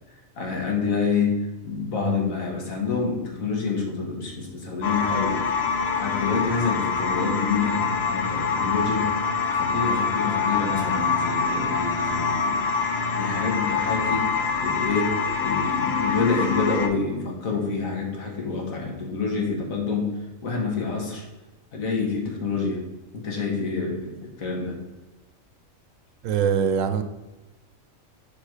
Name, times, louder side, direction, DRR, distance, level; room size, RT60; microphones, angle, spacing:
voice 1, 0.4-1.4 1.6-5.4 6.0-9.1 9.5-12.6 13.1-14.3 14.6-20.1 20.4-21.2 21.7-22.9 23.1-24.8, left 4 dB, 85° left, 0 dB, 1.8 m, -27 dB
sound 1, 4.8-16.9, left 5 dB, 55° left, 0.9 m, -25 dB
voice 2, 26.2-27.0, right 7 dB, 75° right, 9 dB, 1.0 m, -23 dB
5.2 x 4.5 x 4.9 m, 1.1 s
omnidirectional pair, 1.4 m